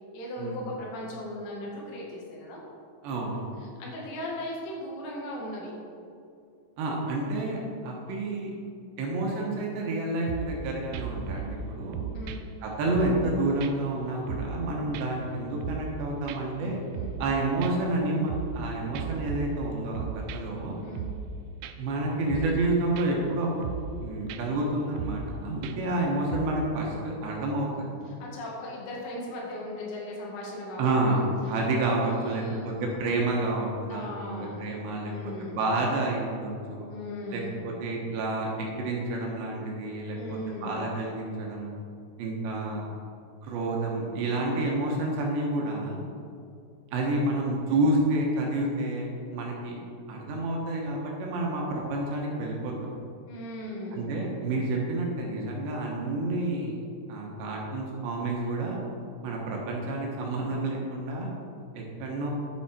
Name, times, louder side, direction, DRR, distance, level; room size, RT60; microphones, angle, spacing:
voice 1, 0.1-2.6 3.8-5.7 12.1-12.4 16.9-17.1 20.8-21.1 28.2-31.3 32.2-32.7 33.9-34.7 35.0-35.6 36.9-37.6 40.1-40.8 53.3-54.2, left 1 dB, 85° left, -3 dB, 4.6 m, -38 dB
voice 2, 3.0-3.5 6.8-8.5 9.0-12.1 12.6-16.8 17.2-20.1 20.3-20.8 21.8-23.7 24.0-27.9 30.8-36.9 37.3-41.7 42.2-42.9 43.4-46.0 46.9-49.8 50.1-52.9 53.9-56.8 57.1-58.8 59.2-61.3 61.7-62.3, right 2 dB, 70° right, -2 dB, 3.2 m, -29 dB
sound 1, 10.3-10.6 10.9-11.6 11.9-13.3 13.6-13.7 14.1-14.7 14.9-16.0 16.3-16.4 16.7-17.3 17.6-18.7 19.0-20.6 21.0-21.3 21.6-21.7 22.1-22.7 23.0-23.3 23.6-24.0 24.3-24.4 24.8-25.3 25.6-26.0 26.3-26.5, right 7 dB, 90° right, 3.3 m, -36 dB
10.5 x 8.2 x 4.4 m, 2.5 s
omnidirectional pair, 5.8 m